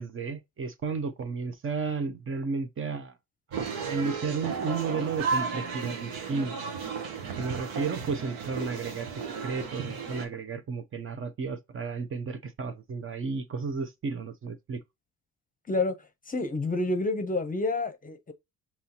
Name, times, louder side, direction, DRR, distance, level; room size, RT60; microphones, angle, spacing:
voice 1, 0.0-3.2 3.7-6.6 7.3-14.8, right 4 dB, 35° right, 0.7 m, -33 dB
sound 1, 3.5-10.3, right 5 dB, 80° right, 1.1 m, -34 dB
voice 2, 16.3-18.3, left 2 dB, 25° left, 0.7 m, -28 dB
5.5 x 3.0 x 2.8 m
cardioid pair, 95°, 35 cm